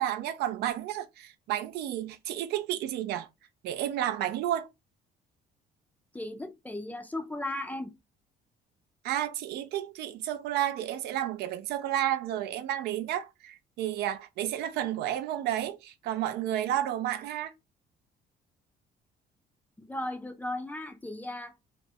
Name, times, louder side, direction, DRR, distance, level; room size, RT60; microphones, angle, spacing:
voice 1, 0.0-3.3 3.6-4.7 9.0-17.5, right 12 dB, 75° right, 0.4 m, -31 dB
voice 2, 6.1-7.9 19.8-21.5, left 1 dB, 10° left, 0.4 m, -36 dB
2.3 x 2.1 x 2.7 m
cardioid pair, 110°, 17 cm